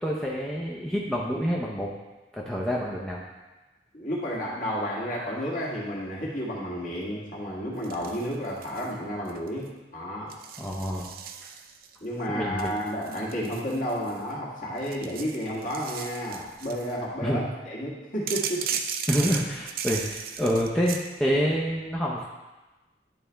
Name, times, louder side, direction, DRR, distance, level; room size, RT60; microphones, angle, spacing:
voice 1, 0.0-1.9 2.3-3.2 10.6-11.1 11.4-11.5 12.3-12.7 17.2-17.4 19.1-22.3, equal, 5° left, -4 dB, 0.6 m, -27 dB
voice 2, 3.9-10.4 12.0-18.8, equal, 50° left, -5 dB, 1.7 m, -31 dB
sound 1, 7.8-8.9 9.2-9.7 10.3-11.9 12.6-14.3 14.8-16.9 18.3-21.1, right 7 dB, 55° right, 0.4 m, -36 dB
10.5 x 4.1 x 3.4 m, 1.1 s
head